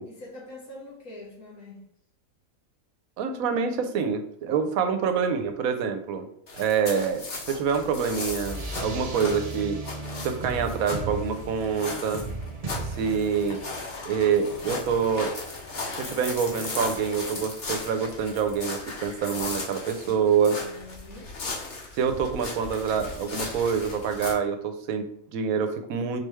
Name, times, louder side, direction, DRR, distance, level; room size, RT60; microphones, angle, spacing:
voice 1, 0.0-1.9 12.9-13.3 20.1-21.4, left 2 dB, 85° left, -5 dB, 2.0 m, -45 dB
voice 2, 3.2-6.3 6.6-9.8 10.2-12.2 13.0-13.6 14.0-15.3 15.9-20.6 22.0-26.2, right 6 dB, 75° right, 7 dB, 1.1 m, -26 dB
sound 1, 6.5-24.3, left 3 dB, 45° left, 1.2 m, -37 dB
sound 2, 7.4-18.1, right 2 dB, 50° right, 0.4 m, -38 dB
4.3 x 3.1 x 3.4 m, 0.72 s
omnidirectional pair, 1.5 m